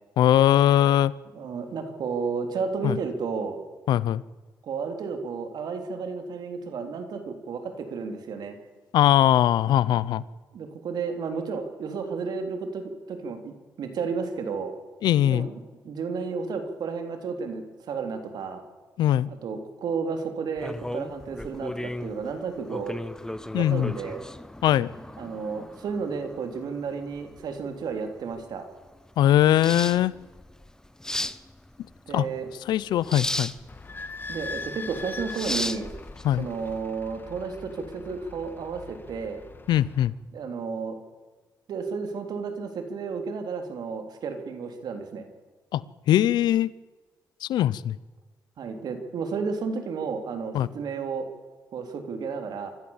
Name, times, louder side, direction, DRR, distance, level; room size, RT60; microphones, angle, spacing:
voice 1, 0.2-1.1 2.8-3.0 3.9-4.2 8.9-10.2 15.0-15.5 19.0-19.3 23.5-23.9 24.6-24.9 29.2-30.1 32.1-32.3 32.7-33.5 36.2-36.5 39.7-40.1 45.7-46.7 47.4-48.0 50.5-50.7, left 12 dB, 85° left, 20 dB, 0.7 m, -21 dB
voice 2, 1.3-3.6 4.6-8.6 10.5-14.7 15.3-15.5 15.8-18.6 19.3-23.0 23.5-24.2 25.2-28.6 32.1-32.5 34.3-35.9 36.4-39.4 40.3-41.0 41.7-45.3 48.6-51.3 51.7-52.7, right 5 dB, 70° right, 6 dB, 3.4 m, -32 dB
sound 1, 20.6-36.8, left 1 dB, 10° left, 1.1 m, -36 dB
Idling / Squeak, 33.7-40.1, left 3 dB, 30° left, 1.8 m, -41 dB
24.0 x 14.5 x 7.3 m, 1.3 s
cardioid pair, 75°, 7 cm